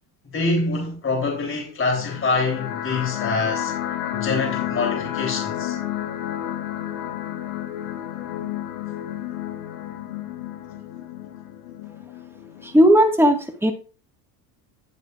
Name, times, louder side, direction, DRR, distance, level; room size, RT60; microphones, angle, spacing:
voice 1, 0.2-3.7 4.1-5.8, left 3 dB, 30° left, 3.3 m, -25 dB
sound 1, 1.9-12.9, left 11 dB, 85° left, 1.4 m, -31 dB
voice 2, 12.6-13.7, equal, 5° right, 1.7 m, -16 dB
9.6 x 8.7 x 2.4 m
supercardioid pair, 90°, 43 cm